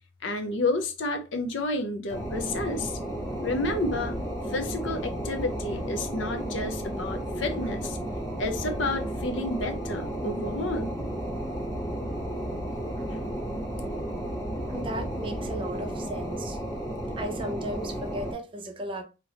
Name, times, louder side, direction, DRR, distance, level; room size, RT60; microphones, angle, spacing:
voice 1, 0.2-3.0 3.4-4.2 4.5-8.0 8.4-11.0 13.1-13.3, left 2 dB, 75° left, 0.6 m, -30 dB
sound 1, 2.1-18.3, right 1 dB, 15° left, 1.0 m, -33 dB
sound 2, 2.5-15.6, equal, 40° left, 1.0 m, -41 dB
voice 2, 14.7-16.6 17.2-19.0, right 1 dB, 25° right, 0.5 m, -35 dB
2.8 x 2.4 x 3.3 m
head